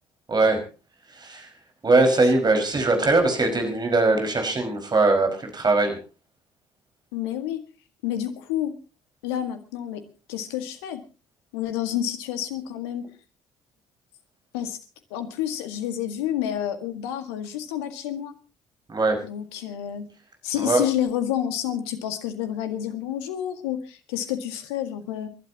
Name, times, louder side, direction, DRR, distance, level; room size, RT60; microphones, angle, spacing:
voice 1, 0.3-0.6 1.2-1.5 1.8-6.0 18.9-19.2 20.5-20.8, right 2 dB, 30° right, 5 dB, 5.2 m, -21 dB
voice 2, 7.1-7.6 8.0-8.8 9.2-10.0 10.3-11.0 11.5-13.0 14.5-14.8 15.1-18.3 19.2-20.1 20.4-25.3, left 11 dB, 75° left, 9 dB, 1.8 m, -29 dB
30.0 x 12.0 x 2.9 m, 0.32 s
figure-of-eight pair, 50°, 14 cm